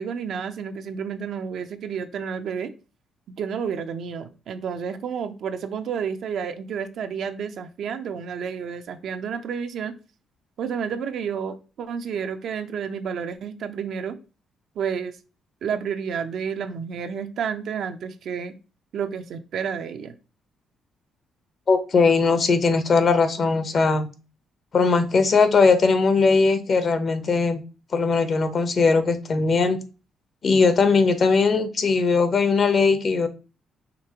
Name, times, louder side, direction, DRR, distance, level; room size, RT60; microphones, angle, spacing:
voice 1, 0.0-2.7 3.4-9.9 10.6-14.2 14.8-15.2 15.6-18.5 18.9-20.1, right 7 dB, 70° right, 8 dB, 0.6 m, -30 dB
voice 2, 21.7-24.1 24.7-27.6 27.9-29.8 30.4-33.3, left 4 dB, 50° left, 10 dB, 0.8 m, -19 dB
5.2 x 3.3 x 2.8 m, 0.32 s
cardioid pair, 90°, 0 cm